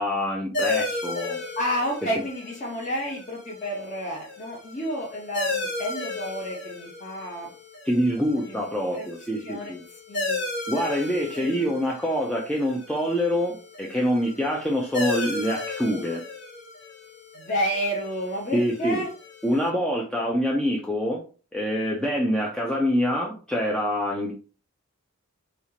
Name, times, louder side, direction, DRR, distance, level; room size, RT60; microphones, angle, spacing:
voice 1, 0.0-1.4 7.8-9.8 10.7-16.2 18.5-19.0 19.4-21.2 21.5-24.3, equal, 5° left, -2 dB, 0.4 m, -25 dB
sound 1, 0.5-19.7, left 2 dB, 50° left, 1.1 m, -35 dB
voice 2, 1.6-7.5 8.5-8.6 8.9-9.1 9.4-9.7 10.1-10.4 11.4-11.7 17.4-19.1, equal, 35° left, -3 dB, 0.9 m, -30 dB
4.3 x 2.4 x 2.8 m, 0.37 s
head